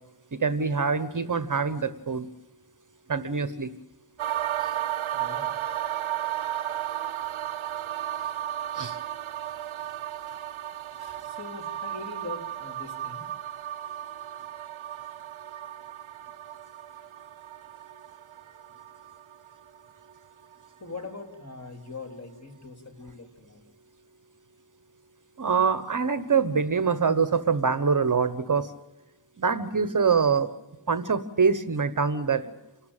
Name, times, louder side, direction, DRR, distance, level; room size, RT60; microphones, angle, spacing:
voice 1, 0.3-2.3 3.1-3.7 4.6-4.7 8.7-9.0 25.4-28.7 29.4-30.5 30.9-32.4, right 5 dB, 40° right, 13 dB, 1.0 m, -24 dB
sound 1, 4.2-20.2 20.4-20.5, right 12 dB, 75° right, 0.6 m, -34 dB
voice 2, 5.1-5.5 10.3-10.4 11.0-13.3 20.8-23.6, left 3 dB, 30° left, 5 dB, 3.5 m, -42 dB
28.0 x 13.0 x 9.0 m, 1.0 s
wide cardioid pair, 115°, 49 cm